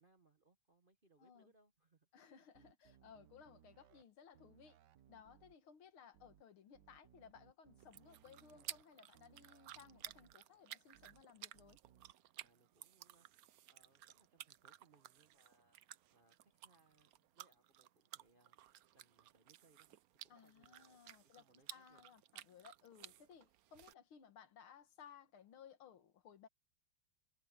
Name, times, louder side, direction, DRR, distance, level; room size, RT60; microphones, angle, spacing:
voice 1, 0.0-2.5 8.5-8.7 12.4-13.3 13.7-18.6 18.9-20.0 20.2-22.1, right 3 dB, 35° right, 1.0 m, -73 dB
voice 2, 1.2-1.5 2.1-4.8 5.1-11.8 20.3-21.5 21.7-26.5, left 7 dB, 80° left, 2.3 m, -61 dB
sound 1, 2.5-4.0 4.3-5.5 6.1-6.4 6.7-8.8 9.1-10.3 10.9-11.2 11.5-12.1, right 10 dB, 65° right, 1.3 m, -68 dB
sound 2, 7.8-23.9, right 13 dB, 90° right, 0.7 m, -56 dB
omnidirectional pair, 2.3 m